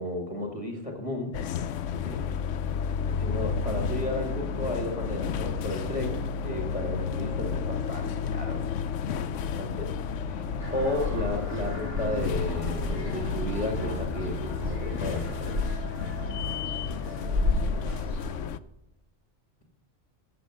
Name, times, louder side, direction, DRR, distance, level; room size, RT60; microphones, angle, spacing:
voice 1, 0.0-1.3 3.2-8.6 9.3-9.9 10.2-10.5 10.7-15.5, left 1 dB, 30° left, 1 dB, 2.0 m, -33 dB
sound 1, 1.3-18.6, left 6 dB, 85° left, 1.0 m, -32 dB
voice 2, 1.9-2.4 9.0-9.5 16.2-16.8 17.3-18.6, right 4 dB, 50° right, -2 dB, 3.7 m, -47 dB
sound 2, 10.6-18.4, left 2 dB, 80° right, 4.7 m, -33 dB
14.5 x 6.6 x 6.3 m, 0.93 s
omnidirectional pair, 1.2 m